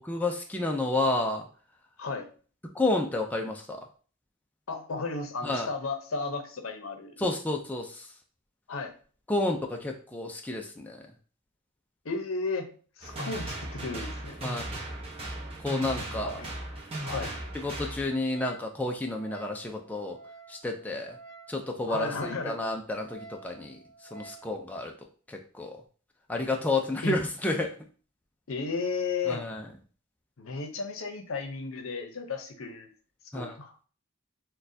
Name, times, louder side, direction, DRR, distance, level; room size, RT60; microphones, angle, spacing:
voice 1, 0.1-1.4 2.8-3.8 5.4-5.7 7.2-8.0 9.3-11.0 14.4-14.6 15.6-16.4 17.6-20.2 20.5-21.2 21.5-23.8 24.1-24.9 25.3-25.7 26.3-27.7 29.3-29.6 33.3-33.6, left 2 dB, 10° left, 2 dB, 0.4 m, -30 dB
voice 2, 4.7-7.2 8.7-8.9 12.0-12.7 13.0-14.4 16.1-16.5 17.0-17.3 21.9-22.6 27.0-27.2 28.5-29.4 30.4-32.9 33.3-33.7, left 4 dB, 70° left, 6 dB, 0.7 m, -34 dB
sound 1, 13.0-18.0, right 1 dB, 30° right, 1.0 m, -37 dB
Wind instrument woodwind instrument, 18.3-24.5, right 3 dB, 65° right, 1.2 m, -50 dB
6.2 x 2.3 x 2.6 m, 0.40 s
head